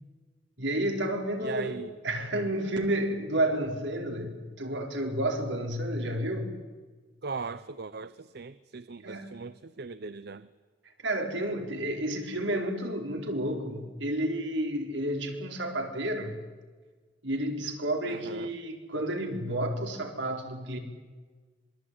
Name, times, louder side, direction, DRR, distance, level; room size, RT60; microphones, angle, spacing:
voice 1, 0.6-1.8 2.0-6.5 9.0-9.5 11.0-16.4 17.2-20.8, right 1 dB, 75° right, 4 dB, 4.6 m, -31 dB
voice 2, 1.4-1.9 7.2-10.5 18.1-18.5, right 4 dB, 60° right, 15 dB, 0.7 m, -39 dB
26.0 x 22.5 x 9.6 m, 1.4 s
head